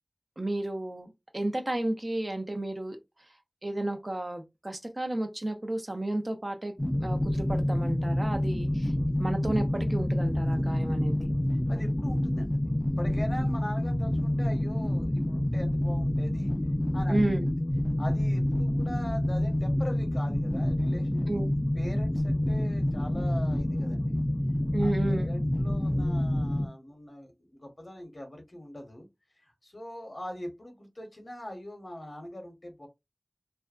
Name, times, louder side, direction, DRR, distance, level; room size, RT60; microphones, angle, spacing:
voice 1, 0.4-3.0 3.6-8.9 9.2-11.3 17.1-17.5 21.3-21.5 24.7-25.3, right 1 dB, 45° right, 0.6 m, -32 dB
sound 1, 6.8-26.7, left 1 dB, 20° left, 0.5 m, -27 dB
voice 2, 11.7-16.5 16.9-17.2 18.0-21.3 21.7-24.2 24.8-29.1 29.4-32.9, left 1 dB, 55° left, 0.9 m, -42 dB
2.5 x 2.1 x 2.4 m
wide cardioid pair, 40°, 0 cm